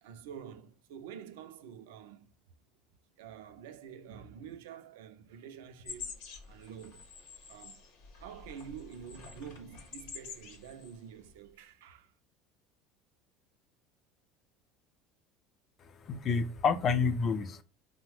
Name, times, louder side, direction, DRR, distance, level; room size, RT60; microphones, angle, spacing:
voice 1, 0.0-2.3 3.2-7.1 7.5-7.9 8.2-12.1, right 8 dB, 90° right, 0.3 m, -48 dB
sound 1, 5.8-11.0 11.3-11.5, left 5 dB, 75° left, 0.7 m, -48 dB
voice 2, 15.8-17.6, left 5 dB, 40° left, 0.4 m, -29 dB
3.0 x 2.0 x 3.1 m
supercardioid pair, 110°, 0 cm